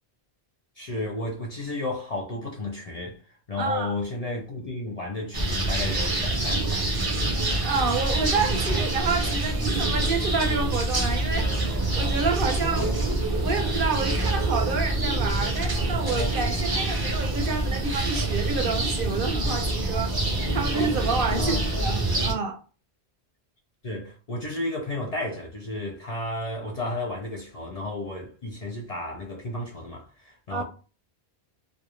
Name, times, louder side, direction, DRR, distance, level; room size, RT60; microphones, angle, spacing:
voice 1, 0.8-7.1 21.3-21.8 23.8-30.6, left 2 dB, 50° left, 0.5 m, -33 dB
voice 2, 3.6-3.9 7.6-11.5 12.0-12.9 13.4-20.1 20.5-22.6 30.5-30.6, right 4 dB, 60° right, 0.7 m, -28 dB
sound 1, 5.3-22.3, right 2 dB, 30° right, 0.4 m, -26 dB
2.3 x 2.1 x 3.0 m
omnidirectional pair, 1.1 m